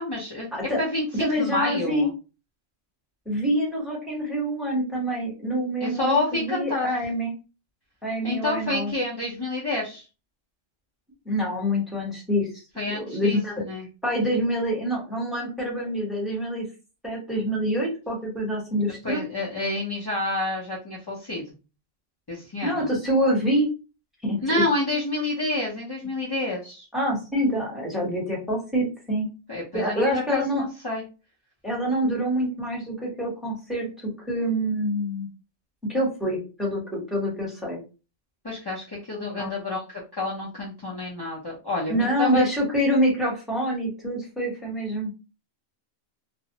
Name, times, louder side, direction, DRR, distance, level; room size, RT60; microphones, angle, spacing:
voice 1, 0.0-0.5 0.8-2.1 5.8-6.9 8.2-10.0 12.8-13.8 19.0-21.4 22.3-22.9 24.4-26.9 29.5-31.0 38.4-39.8 40.2-42.5, left 2 dB, 35° left, -6 dB, 0.4 m, -28 dB
voice 2, 0.5-0.8 1.2-2.1 3.3-7.3 8.0-8.9 11.2-12.5 12.9-13.5 14.0-16.7 17.0-19.2 22.6-23.7 24.2-24.6 26.9-29.3 29.7-30.6 31.6-35.3 35.9-37.8 39.4-39.5 41.9-45.2, equal, ahead, -3 dB, 0.8 m, -26 dB
2.5 x 2.0 x 2.7 m, 0.31 s
omnidirectional pair, 1.3 m